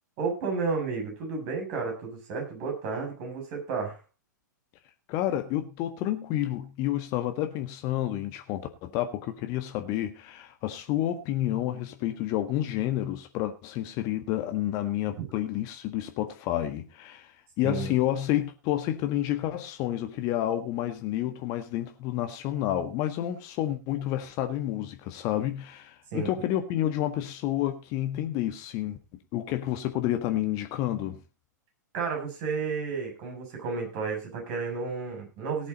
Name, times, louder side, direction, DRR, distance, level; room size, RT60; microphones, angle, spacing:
voice 1, 0.2-4.0 15.2-15.3 17.6-17.9 26.1-26.3 31.9-35.7, right 4 dB, 45° right, 7.4 m, -32 dB
voice 2, 5.1-17.3 17.6-29.0 29.3-31.2, left 13 dB, 35° left, 1.6 m, -29 dB
18.0 x 8.4 x 4.1 m
figure-of-eight pair, 105°, 10 cm